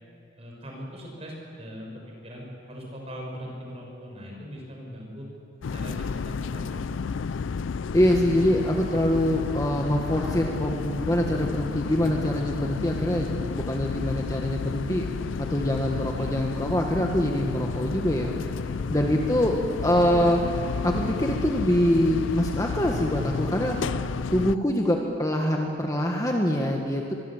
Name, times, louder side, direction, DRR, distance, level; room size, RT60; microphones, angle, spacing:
voice 1, 0.4-1.9 2.2-5.3 5.7-7.1 16.2-16.3, equal, 30° right, -1 dB, 5.8 m, -40 dB
sound 1, 5.6-24.6, left 5 dB, 80° left, 0.4 m, -31 dB
voice 2, 7.9-15.1 15.4-18.6 18.9-27.1, equal, 15° left, 1 dB, 1.5 m, -25 dB
24.0 x 21.5 x 7.3 m, 2.7 s
head